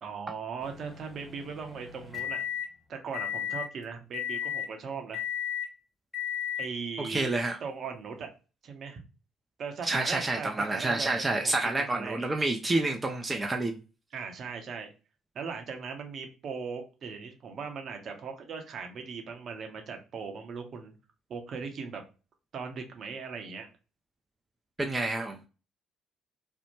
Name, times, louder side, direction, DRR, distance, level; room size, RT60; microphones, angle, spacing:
voice 1, 0.0-2.4 2.9-5.2 6.6-7.3 7.6-8.3 8.6-9.0 9.6-12.2 14.1-14.9 15.3-20.9 21.3-22.0 22.5-23.7, right 5 dB, 55° right, 4 dB, 0.7 m, -39 dB
sound 1, 0.6-2.7 3.1-3.7 4.1-4.7 5.1-5.7 6.1-6.7, left 9 dB, 15° left, 1.0 m, -34 dB
voice 2, 7.0-7.6 9.8-13.8 24.8-25.5, right 2 dB, 25° right, 3 dB, 0.4 m, -29 dB
2.6 x 2.1 x 2.9 m, 0.32 s
hypercardioid pair, 50°, 0 cm